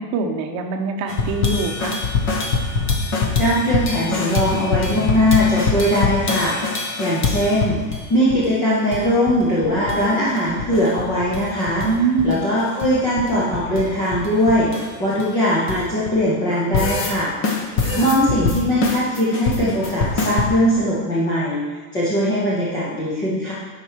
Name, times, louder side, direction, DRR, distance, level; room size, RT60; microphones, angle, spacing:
voice 1, 0.0-2.0 11.8-12.4 17.8-18.1, right 4 dB, 35° right, 4 dB, 0.9 m, -23 dB
sound 1, 1.1-8.0 8.3-8.4 8.7-9.4 9.6-10.0 10.3-11.9 12.2-16.1 16.5-17.1 17.4-20.5, left 4 dB, 25° left, 1.0 m, -24 dB
voice 2, 3.4-7.8 8.1-11.9 12.2-17.3 18.0-21.6 21.9-23.5, equal, 10° left, -8 dB, 0.3 m, -20 dB
9.7 x 5.7 x 4.7 m, 1.4 s
supercardioid pair, 165°, 49 cm